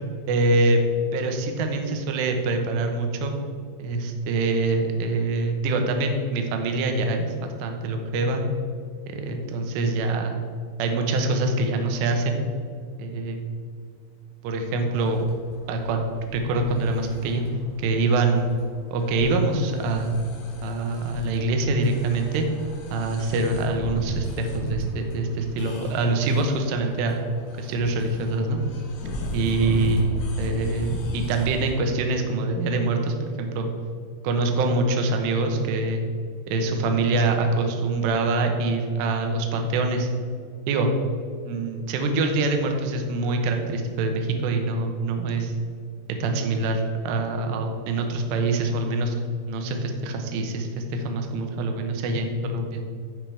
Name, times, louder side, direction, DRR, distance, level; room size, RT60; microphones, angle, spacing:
voice 1, 0.3-0.8 1.1-3.3 3.8-8.4 9.1-10.4 10.8-12.4 13.0-13.4 14.4-15.3 15.7-16.1 16.3-17.4 17.8-18.5 18.9-20.2 20.6-22.5 22.9-27.2 27.6-28.6 29.3-33.7 34.2-36.0 36.5-40.1 40.7-40.9 41.4-45.5 46.2-49.2 49.5-52.8, right 2 dB, 75° right, 4 dB, 2.8 m, -24 dB
sound 1, 14.9-31.7, equal, 85° left, 4.4 m, -36 dB
14.5 x 5.1 x 3.3 m, 2.2 s
omnidirectional pair, 5.6 m